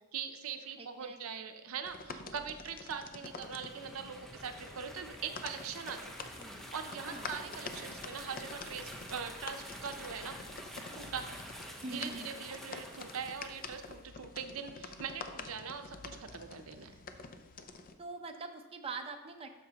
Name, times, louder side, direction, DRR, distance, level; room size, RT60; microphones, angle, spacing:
voice 1, 0.1-6.3 6.7-10.5 10.9-11.4 11.9-16.9, right 6 dB, 80° right, 8 dB, 0.6 m, -42 dB
voice 2, 0.8-1.5 7.1-7.9 11.8-12.4 18.0-19.5, right 3 dB, 30° right, 4 dB, 0.6 m, -44 dB
sound 1, 1.8-17.9, left 4 dB, 45° left, 0.5 m, -48 dB
sound 2, 3.1-14.0, equal, ahead, 0.8 m, -48 dB
12.5 x 5.2 x 2.9 m, 1.2 s
head